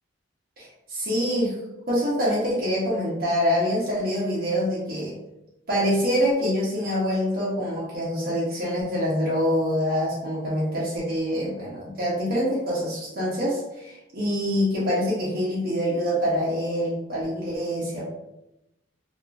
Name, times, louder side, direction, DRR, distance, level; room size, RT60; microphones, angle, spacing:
voice 1, 0.9-1.5 1.9-5.2 5.7-18.0, equal, 50° right, -6 dB, 0.7 m, -25 dB
2.9 x 2.4 x 2.2 m, 0.89 s
head